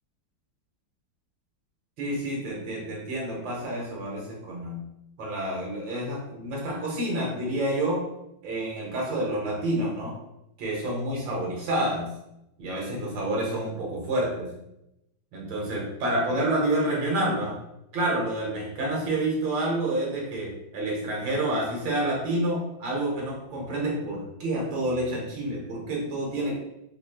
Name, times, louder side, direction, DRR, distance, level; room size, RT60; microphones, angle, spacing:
voice 1, 2.0-4.8 5.2-8.0 8.4-10.1 10.6-12.1 12.6-14.5 15.3-17.6 17.9-26.5, right 1 dB, 75° right, -3 dB, 1.9 m, -28 dB
4.8 x 3.0 x 2.2 m, 0.85 s
omnidirectional pair, 2.1 m